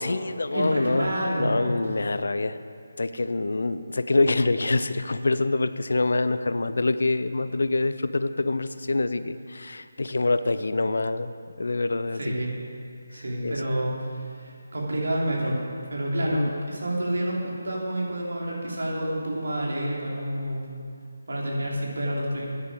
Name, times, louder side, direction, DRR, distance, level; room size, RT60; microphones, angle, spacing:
voice 1, 0.0-2.6 3.0-11.3 11.6-12.4 13.1-13.7 16.3-16.5, left 2 dB, 65° left, 12 dB, 0.5 m, -26 dB
voice 2, 0.5-1.8 12.1-12.5 13.1-15.6 15.9-20.8 21.3-22.5, right 1 dB, 65° right, -3 dB, 3.2 m, -29 dB
14.0 x 9.6 x 4.9 m, 2.2 s
figure-of-eight pair, 155°, 0 cm